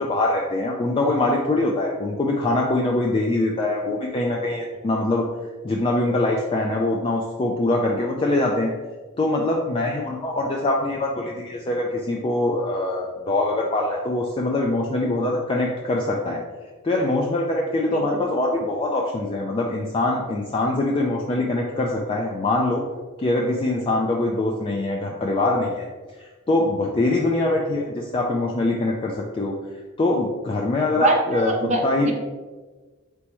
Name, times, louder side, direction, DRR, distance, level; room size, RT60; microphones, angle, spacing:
voice 1, 0.0-5.2 5.6-8.7 9.2-16.4 16.8-22.8 23.2-25.9 26.2-29.6 30.0-31.5 31.8-32.1, left 2 dB, 25° left, -1 dB, 0.3 m, -23 dB
voice 2, 31.0-32.1, right 3 dB, 35° right, 1 dB, 0.5 m, -23 dB
4.0 x 3.4 x 3.0 m, 1.3 s
head